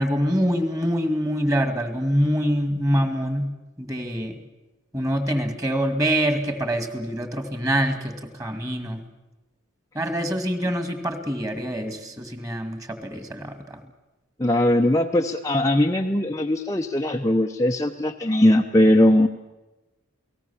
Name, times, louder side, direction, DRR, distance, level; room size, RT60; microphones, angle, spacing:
voice 1, 0.0-3.5 3.8-4.4 4.9-9.0 9.9-13.8, equal, 15° right, 9 dB, 2.1 m, -25 dB
voice 2, 14.4-19.3, left 1 dB, 15° left, 2 dB, 0.8 m, -20 dB
29.0 x 19.0 x 7.1 m, 1.1 s
head